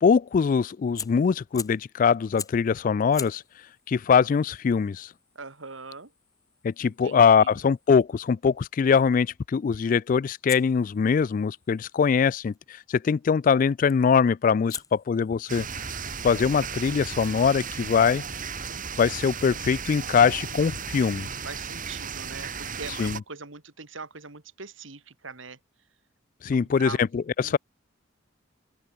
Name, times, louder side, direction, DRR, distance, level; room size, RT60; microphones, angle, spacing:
voice 1, 0.0-3.4 3.9-5.1 6.6-15.7 16.2-18.2 19.0-21.3 23.0-23.2 26.4-27.6, left 6 dB, 45° left, 0.3 m, -22 dB
Fire, 0.9-1.9 2.4-2.7 3.1-8.0 10.5-12.6 13.9-14.2 14.7-18.1, left 6 dB, 20° left, 2.4 m, -44 dB
voice 2, 5.3-6.1 6.8-7.5 21.4-25.6 26.4-27.0 27.4-27.6, right 4 dB, 80° right, 2.8 m, -41 dB
sound 1, 15.5-23.2, right 6 dB, 45° right, 2.9 m, -35 dB
open air
head